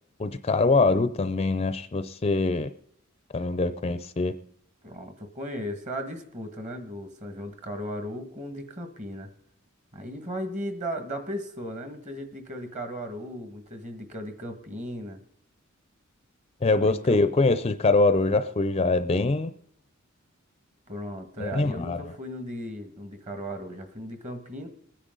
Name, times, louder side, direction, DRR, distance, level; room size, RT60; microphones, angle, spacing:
voice 1, 0.2-2.7 3.3-4.3 16.6-19.5 21.4-22.0, left 3 dB, 30° left, 11 dB, 0.5 m, -23 dB
voice 2, 4.8-9.3 9.9-15.2 16.8-17.2 20.9-24.7, equal, 35° right, 7 dB, 1.7 m, -36 dB
21.0 x 9.9 x 3.9 m, 0.70 s
head